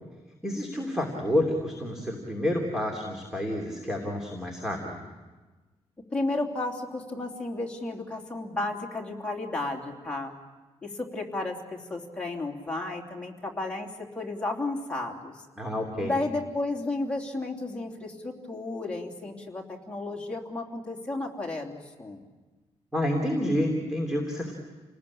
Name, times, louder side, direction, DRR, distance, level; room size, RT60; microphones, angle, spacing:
voice 1, 0.4-5.0 15.6-16.1 22.9-24.5, left 1 dB, 5° right, 1 dB, 3.1 m, -29 dB
voice 2, 6.1-10.3 10.8-15.4 16.0-22.2, left 2 dB, 10° left, -1 dB, 3.1 m, -33 dB
29.5 x 19.5 x 8.7 m, 1.3 s
wide cardioid pair, 150°, 11 cm